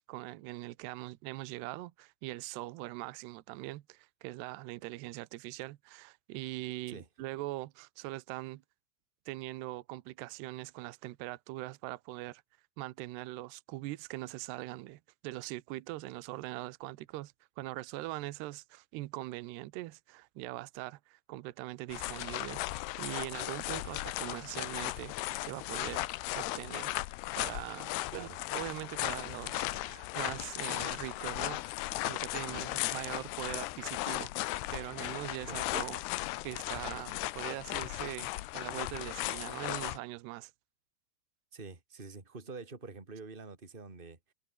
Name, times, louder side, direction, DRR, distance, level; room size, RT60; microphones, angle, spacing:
voice 1, 0.1-8.6 9.3-12.4 12.8-22.6 23.0-26.1 26.4-26.9 27.4-34.3 34.7-36.0 36.4-40.5, right 18 dB, 75° right, 2.7 m, -42 dB
sound 1, 21.9-40.0, left 18 dB, 80° left, 2.5 m, -36 dB
voice 2, 41.5-44.3, right 4 dB, 15° right, 2.7 m, -46 dB
omnidirectional pair, 5.3 m